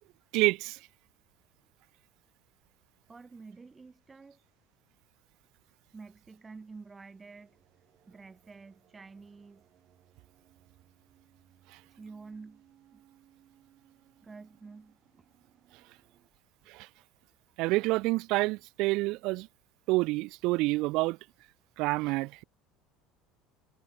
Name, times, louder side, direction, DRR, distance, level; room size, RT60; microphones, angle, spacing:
voice 1, 0.3-0.8 11.7-11.8 16.7-16.9 17.6-19.5 19.9-21.2 21.8-22.4, right 22 dB, 65° right, 0.3 m, -28 dB
voice 2, 3.1-4.4 5.9-7.6 8.1-9.7 11.9-12.6 12.9-13.0 14.2-15.3, right 4 dB, 20° right, 4.0 m, -49 dB
sound 1, 7.0-16.3, right 12 dB, 50° right, 4.6 m, -65 dB
hypercardioid pair, 85°, 0 cm